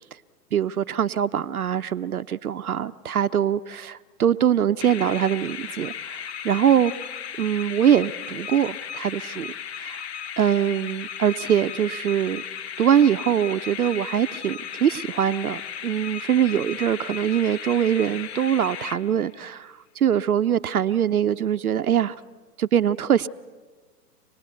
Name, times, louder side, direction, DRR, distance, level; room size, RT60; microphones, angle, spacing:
voice 1, 0.5-6.9 7.4-9.5 9.8-10.0 10.4-12.4 12.8-22.2 22.6-23.3, right 9 dB, 65° right, 11 dB, 0.7 m, -23 dB
sound 1, 4.8-19.5, left 8 dB, 45° left, 0.9 m, -36 dB
26.0 x 19.5 x 7.9 m, 1.4 s
figure-of-eight pair, 115°, 47 cm